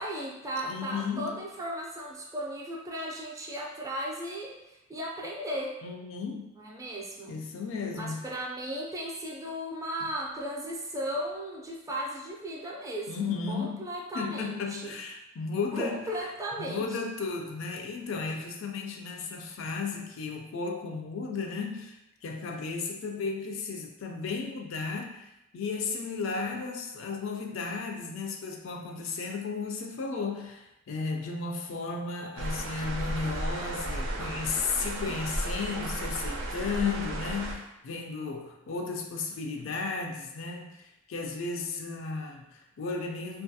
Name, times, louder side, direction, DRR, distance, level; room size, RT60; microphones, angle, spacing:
voice 1, 0.0-5.7 6.6-7.3 7.9-15.0 15.7-16.9, equal, 15° right, -2 dB, 0.4 m, -36 dB
voice 2, 0.7-1.4 5.8-6.5 7.3-8.3 13.1-13.8 14.1-16.0 16.6-43.4, left 4 dB, 70° left, 2 dB, 0.4 m, -34 dB
sound 1, 32.4-37.5, right 1 dB, 90° right, 0.4 m, -34 dB
2.5 x 2.4 x 2.6 m, 0.88 s
head